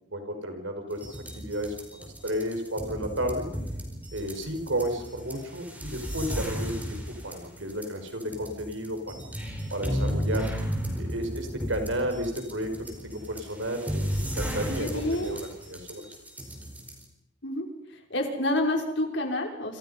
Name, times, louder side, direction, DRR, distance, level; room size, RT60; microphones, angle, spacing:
voice 1, 0.1-3.5 4.1-9.1 9.7-10.5 11.0-16.1, right 1 dB, 80° right, 5 dB, 5.2 m, -32 dB
sound 1, 0.9-17.0, equal, 10° right, 4.9 m, -34 dB
voice 2, 14.8-15.4 17.4-17.7 18.1-19.8, left 1 dB, 65° left, 3 dB, 5.7 m, -28 dB
29.0 x 27.0 x 5.6 m, 0.84 s
head